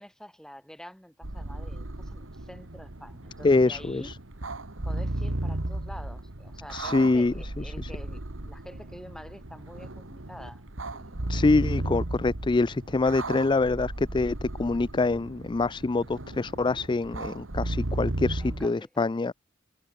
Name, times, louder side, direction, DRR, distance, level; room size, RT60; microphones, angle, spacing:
voice 1, 0.0-4.1 4.8-10.6 10.9-11.2 18.4-19.2, equal, 5° left, 4.0 m, -47 dB
sound 1, 1.2-18.7, right 1 dB, 70° right, 2.0 m, -35 dB
voice 2, 3.4-4.1 6.7-7.3 7.8-7.9 11.3-19.3, left 3 dB, 25° left, 0.4 m, -25 dB
head